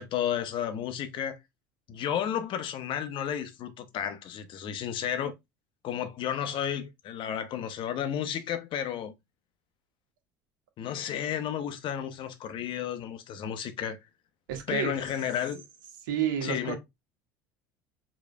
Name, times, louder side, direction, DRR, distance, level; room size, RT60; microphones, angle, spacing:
voice 1, 0.0-1.4 1.9-5.3 5.8-9.1 10.8-14.0 14.7-15.6 16.4-16.8, left 9 dB, 50° left, 0.8 m, -32 dB
voice 2, 14.5-14.9 16.0-16.8, right 10 dB, 75° right, 1.3 m, -30 dB
5.0 x 3.1 x 2.3 m
hypercardioid pair, 80°, 11 cm